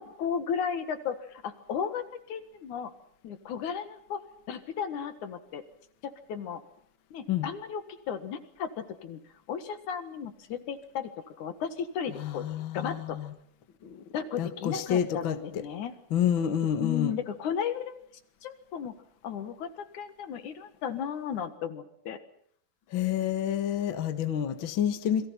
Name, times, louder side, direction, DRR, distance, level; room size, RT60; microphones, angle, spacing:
voice 1, 0.0-2.9 3.2-4.2 4.5-5.6 6.0-6.6 7.1-9.2 9.5-11.1 11.4-12.4 12.7-13.2 14.1-15.9 16.8-18.0 18.4-18.9 19.2-22.2, left 7 dB, 65° left, 11 dB, 3.0 m, -34 dB
voice 2, 12.2-13.3 13.8-14.0 14.4-15.6 16.1-17.1 22.9-25.3, left 9 dB, 45° left, 10 dB, 1.8 m, -29 dB
28.5 x 22.5 x 5.8 m, 0.66 s
omnidirectional pair, 3.8 m